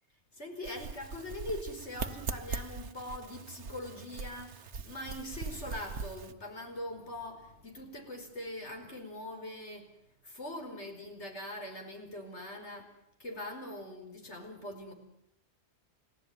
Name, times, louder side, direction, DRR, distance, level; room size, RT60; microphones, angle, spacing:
voice 1, 0.3-9.9 10.2-12.9 13.2-14.9, left 1 dB, 75° left, 4 dB, 5.2 m, -42 dB
sound 1, 0.6-6.3, right 5 dB, 75° right, 1.5 m, -41 dB
30.0 x 16.5 x 9.5 m, 0.76 s
omnidirectional pair, 1.2 m